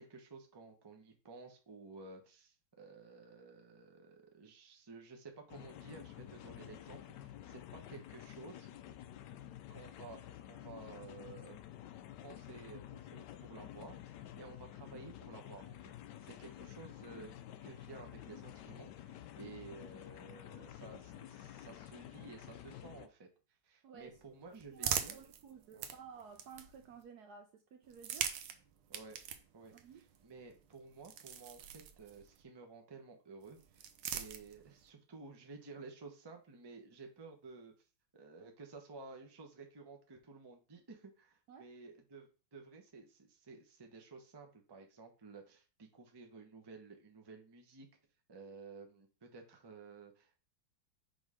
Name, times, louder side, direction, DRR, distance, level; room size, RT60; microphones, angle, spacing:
voice 1, 0.0-8.7 9.7-11.6 12.2-15.9 16.2-17.3 17.6-23.3 23.6-25.2 25.7-25.9 28.9-29.2 29.5-37.7 38.1-47.9 48.3-50.4, right 4 dB, 25° right, 0.5 m, -53 dB
sound 1, 5.5-23.1, left 12 dB, 70° left, 1.0 m, -51 dB
voice 2, 23.8-24.2 24.7-28.3 29.7-30.0 41.5-41.7, right 6 dB, 70° right, 0.9 m, -54 dB
sound 2, 24.0-27.0 27.8-32.4 33.4-34.9, right 9 dB, 90° right, 1.5 m, -43 dB
5.2 x 3.9 x 4.9 m
omnidirectional pair, 2.2 m